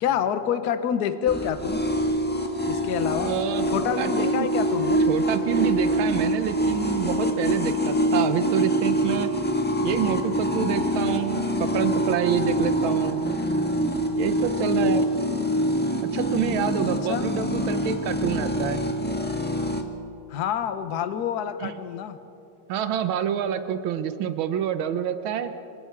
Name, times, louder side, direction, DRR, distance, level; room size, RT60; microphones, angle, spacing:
voice 1, 0.0-1.8 2.7-3.3 3.7-5.1 17.1-17.3 20.3-22.2, left 8 dB, 55° left, 10 dB, 1.4 m, -27 dB
sound 1, 1.3-19.8, equal, 5° left, 1.3 m, -25 dB
voice 2, 3.2-3.7 4.0-4.5 5.1-9.3 9.8-13.2 14.2-15.0 16.1-18.8 21.6-21.7 22.7-25.5, right 9 dB, 85° right, 10 dB, 1.7 m, -27 dB
26.5 x 24.5 x 4.7 m, 2.7 s
omnidirectional pair, 2.2 m